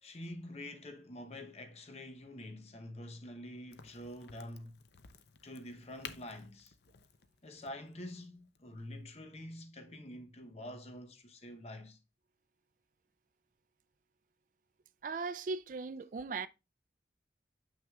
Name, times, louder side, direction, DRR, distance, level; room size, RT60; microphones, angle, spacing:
voice 1, 0.0-4.8 5.4-6.7 7.4-12.0, left 1 dB, 35° left, 0.8 m, -47 dB
Crack, 3.7-9.2, left 7 dB, 65° left, 0.6 m, -54 dB
voice 2, 15.0-16.5, right 4 dB, 45° right, 0.4 m, -38 dB
7.4 x 6.0 x 2.3 m
head